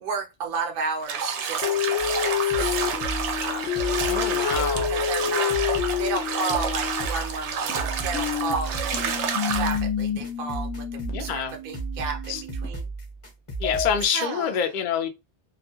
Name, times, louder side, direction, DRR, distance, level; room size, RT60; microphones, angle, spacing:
voice 1, 0.0-2.8 3.4-3.8 4.1-5.6 6.0-12.9 14.1-14.6, right 4 dB, 60° right, 0.8 m, -33 dB
Bathtub (filling or washing), 1.0-9.8, right 6 dB, 85° right, 0.9 m, -29 dB
sound 1, 1.6-7.1 7.7-12.7 13.6-13.9, left 9 dB, 85° left, 0.9 m, -29 dB
sound 2, 2.0-14.1, right 3 dB, 30° left, 0.8 m, -35 dB
voice 2, 4.1-4.9 11.1-11.5 12.3-12.4 13.6-15.1, left 8 dB, 55° left, 0.6 m, -26 dB
2.3 x 2.1 x 2.9 m
omnidirectional pair, 1.2 m